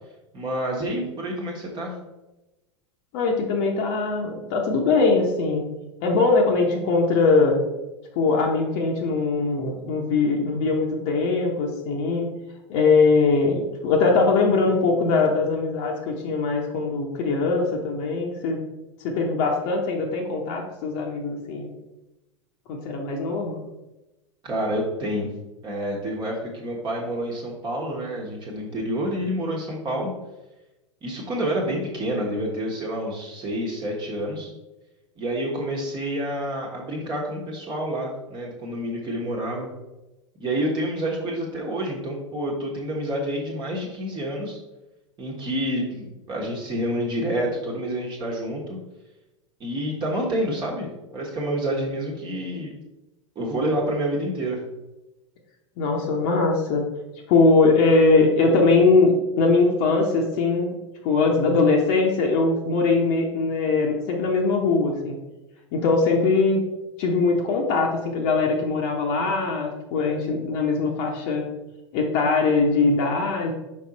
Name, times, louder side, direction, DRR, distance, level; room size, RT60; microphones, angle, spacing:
voice 1, 0.3-1.9 24.4-25.3 25.6-30.1 31.0-34.5 35.2-39.7 40.4-44.6 45.2-48.8 49.6-52.7 53.3-54.6, right 1 dB, 30° right, -2 dB, 1.4 m, -28 dB
voice 2, 3.1-5.6 6.0-7.6 8.2-12.3 12.7-18.6 19.0-21.7 22.7-23.6 55.8-56.9 57.3-60.8 61.0-65.2 65.7-66.6 67.0-71.4 71.9-73.5, left 3 dB, 45° left, 0 dB, 1.0 m, -21 dB
5.5 x 4.6 x 4.1 m, 1.0 s
figure-of-eight pair, 85°, 16 cm